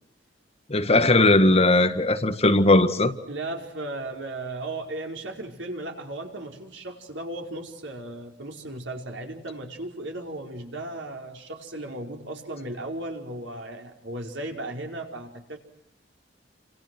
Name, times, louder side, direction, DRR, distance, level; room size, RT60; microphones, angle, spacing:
voice 1, 0.7-3.1, left 2 dB, 35° left, 1.8 m, -18 dB
voice 2, 3.3-15.6, right 2 dB, 80° right, 5.1 m, -36 dB
29.5 x 27.0 x 6.2 m
head